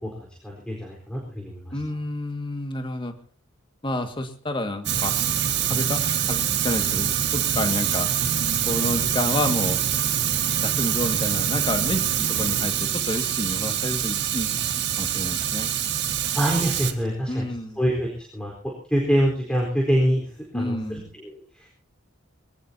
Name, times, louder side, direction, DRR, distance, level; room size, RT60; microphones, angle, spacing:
voice 1, 0.0-1.8 16.3-17.5 17.8-21.7, equal, 5° left, -2 dB, 4.3 m, -26 dB
voice 2, 1.7-3.1 3.8-5.1 5.6-8.1 8.7-9.9 10.6-15.8 17.3-17.8 20.5-21.1, left 1 dB, 25° left, 6 dB, 1.9 m, -29 dB
Fire, 4.8-16.9, right 9 dB, 60° right, 1.5 m, -25 dB
23.0 x 18.0 x 2.8 m, 0.42 s
head